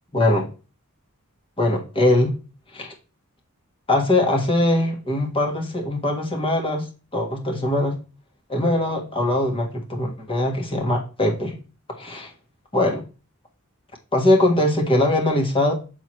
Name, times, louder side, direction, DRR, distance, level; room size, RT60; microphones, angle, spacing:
voice 1, 0.1-0.5 1.6-2.3 2.7-2.9 3.9-6.9 7.1-8.0 8.5-11.5 12.0-12.3 12.7-13.0 14.1-15.7, left 1 dB, 25° left, 2 dB, 1.6 m, -21 dB
7.0 x 6.0 x 3.1 m, 0.33 s
head